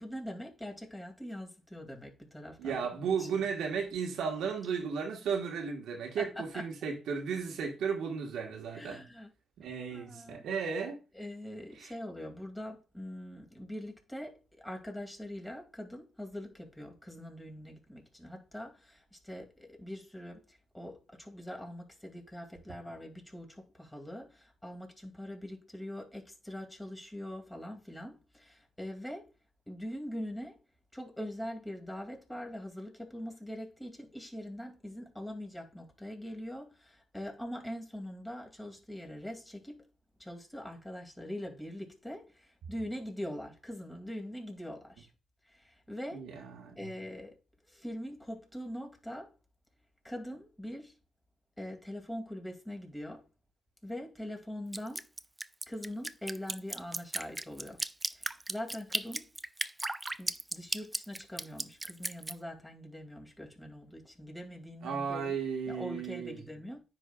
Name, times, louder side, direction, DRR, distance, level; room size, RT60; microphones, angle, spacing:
voice 1, 0.0-2.9 3.2-3.5 6.2-6.6 8.7-9.3 9.9-10.5 11.1-29.3 29.7-30.6 30.9-39.8 40.2-45.1 45.5-46.2 46.8-47.4 47.7-49.3 50.0-50.9 51.6-53.2 53.8-55.0 55.7-57.8 58.1-59.3 60.2-65.4 65.7-66.8, equal, 10° left, 2.3 m, -43 dB
voice 2, 2.6-9.0 9.6-11.0 11.8-11.9 46.1-46.9 64.8-66.4, right 6 dB, 80° right, 1.3 m, -34 dB
Drip, 54.7-62.3, right 2 dB, 15° right, 0.4 m, -35 dB
9.9 x 4.2 x 2.3 m
supercardioid pair, 60°, 0 cm